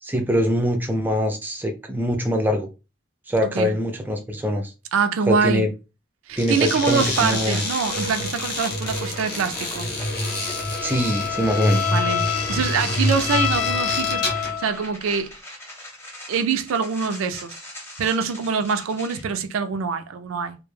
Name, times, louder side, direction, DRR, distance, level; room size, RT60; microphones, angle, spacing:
voice 1, 0.0-2.7 3.3-4.7 5.3-5.7 6.4-7.6 10.8-11.9, equal, 10° right, 0.3 m, -23 dB
voice 2, 4.9-5.6 6.3-9.9 11.9-15.3 16.3-17.5 18.0-20.6, right 5 dB, 90° right, 0.4 m, -24 dB
sound 1, 6.3-14.6, left 1 dB, 50° left, 0.7 m, -27 dB
sound 2, 6.8-19.2, left 1 dB, 10° left, 0.7 m, -41 dB
Bowed string instrument, 10.2-14.9, left 9 dB, 85° left, 0.4 m, -28 dB
2.1 x 2.0 x 3.1 m
head